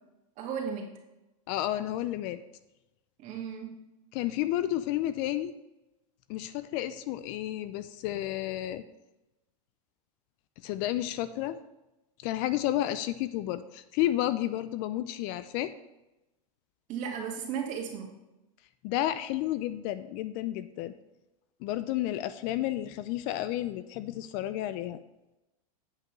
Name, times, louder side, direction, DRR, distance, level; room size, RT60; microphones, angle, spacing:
voice 1, 0.4-0.9 3.2-3.7 16.9-18.1, right 7 dB, 40° right, 1 dB, 2.2 m, -35 dB
voice 2, 1.5-2.4 4.1-5.5 6.3-8.8 10.6-11.6 12.2-15.7 18.8-20.9 21.6-25.0, left 13 dB, 50° left, 13 dB, 0.5 m, -31 dB
8.4 x 5.3 x 5.3 m, 0.97 s
hypercardioid pair, 120°, 19 cm